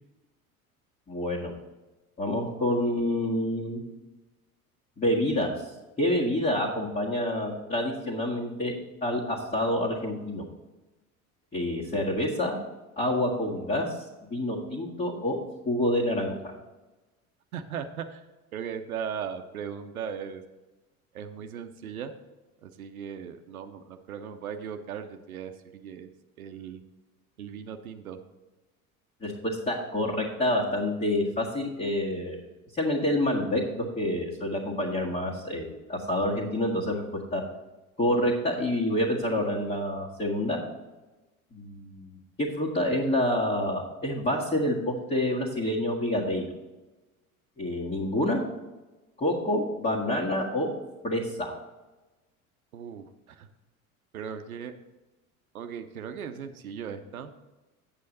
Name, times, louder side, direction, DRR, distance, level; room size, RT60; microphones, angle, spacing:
voice 1, 1.1-1.5 2.2-3.8 5.0-5.5 6.0-8.7 9.0-10.4 11.5-12.6 13.0-14.0 14.3-15.4 15.6-16.5 29.2-32.4 32.8-37.0 37.3-37.4 38.0-40.6 41.5-46.4 47.6-48.4 49.2-50.7 51.0-51.5, left 1 dB, 20° left, -5 dB, 1.7 m, -27 dB
voice 2, 17.5-18.2 18.5-20.4 21.1-22.1 22.6-26.1 26.4-26.8 27.4-28.2 52.7-53.5 54.1-54.7 55.5-57.3, right 7 dB, 75° right, 8 dB, 0.7 m, -38 dB
8.3 x 7.8 x 4.1 m, 1.1 s
figure-of-eight pair, 70°, 43 cm